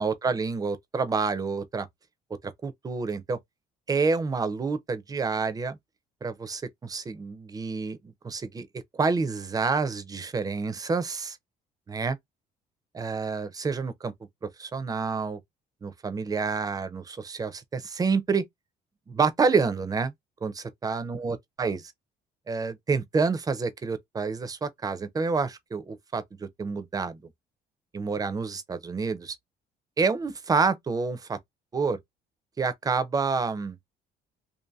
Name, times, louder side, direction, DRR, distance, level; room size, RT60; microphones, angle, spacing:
voice 1, 0.0-1.9 2.4-3.4 3.9-5.8 6.2-8.0 8.2-8.7 8.9-11.4 11.9-12.2 12.9-14.1 14.6-15.4 15.8-18.4 19.1-20.1 20.4-21.8 22.5-27.2 27.9-29.4 30.0-31.4 31.7-32.0 32.6-33.8, right 4 dB, 20° right, 0.4 m, -28 dB
2.6 x 2.6 x 2.2 m
cardioid pair, 110°, 17 cm